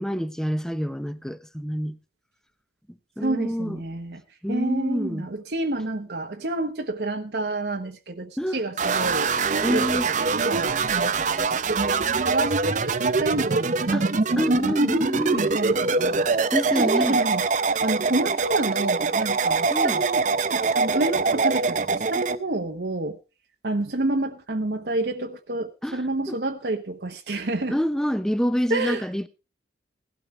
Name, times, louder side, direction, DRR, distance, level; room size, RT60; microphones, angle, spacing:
voice 1, 0.0-2.0 3.2-3.8 4.4-5.3 8.4-8.6 9.6-10.1 13.9-14.0 14.4-15.5 16.5-17.2 19.7-20.0 25.8-26.0 26.3-26.4 27.7-29.3, equal, 5° left, 0.7 m, -27 dB
voice 2, 3.2-4.2 4.5-11.3 11.7-14.6 15.3-16.3 16.7-17.4 17.8-20.2 20.5-23.2 23.6-27.8 28.7-29.0, right 2 dB, 65° right, 1.0 m, -29 dB
sound 1, 8.8-22.4, right 4 dB, 45° right, 0.6 m, -23 dB
17.0 x 12.5 x 3.2 m
head